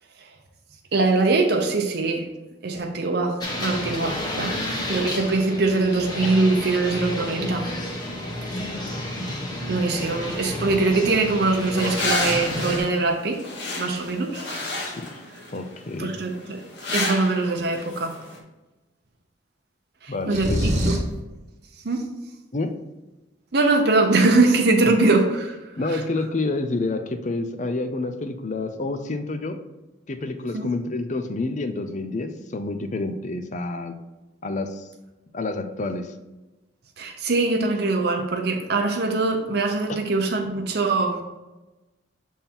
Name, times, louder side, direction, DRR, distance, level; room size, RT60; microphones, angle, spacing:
voice 1, 0.9-2.3 2.6-7.7 9.7-13.4 13.8-14.5 16.0-16.6 16.9-18.2 20.0-21.0 21.8-22.1 23.5-25.6 25.9-26.0 30.5-30.7 37.0-41.2, right 3 dB, 60° right, 2 dB, 0.7 m, -22 dB
sound 1, 3.4-12.8, left 1 dB, 20° left, 1.1 m, -31 dB
sound 2, 10.0-18.4, left 2 dB, 65° left, 1.4 m, -32 dB
voice 2, 15.5-16.2 20.1-20.7 22.5-22.8 25.8-29.6 30.1-34.0 34.4-34.9 35.3-36.1 39.9-40.0, left 2 dB, 40° left, 8 dB, 0.5 m, -28 dB
sound 3, 20.3-21.2, equal, 40° right, 1.1 m, -23 dB
7.1 x 3.6 x 4.3 m, 1.1 s
head